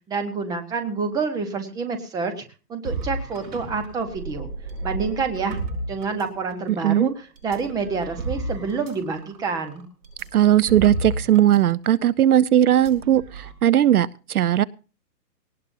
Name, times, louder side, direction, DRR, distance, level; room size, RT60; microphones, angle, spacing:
voice 1, 0.1-2.3 2.7-4.5 4.8-7.1 7.4-9.8, right 4 dB, 5° right, 8 dB, 1.1 m, -28 dB
sound 1, 2.8-6.7 7.4-11.6 11.8-12.0 12.7-13.5, right 2 dB, 85° right, 7.7 m, -33 dB
voice 2, 6.7-7.1 10.3-14.6, right 11 dB, 60° right, 21 dB, 0.7 m, -18 dB
20.0 x 18.5 x 2.7 m, 0.35 s
hypercardioid pair, 160°, 50 cm